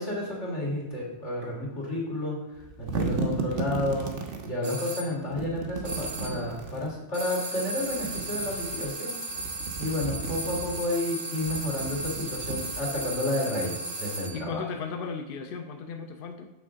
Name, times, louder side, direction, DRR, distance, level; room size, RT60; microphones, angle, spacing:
voice 1, 0.0-4.1 4.4-9.4 9.8-14.6, left 1 dB, 80° left, -4 dB, 2.3 m, -31 dB
sound 1, 2.5-4.5 5.3-6.9 7.8-8.9 9.3-10.8 11.4-13.2, right 4 dB, 85° right, 1.2 m, -34 dB
sound 2, 4.6-5.1 5.8-6.5 7.1-14.5, right 2 dB, 45° right, 0.3 m, -35 dB
voice 2, 14.3-16.5, left 5 dB, 60° left, 5 dB, 0.7 m, -36 dB
6.9 x 3.7 x 6.2 m, 1.0 s
omnidirectional pair, 1.2 m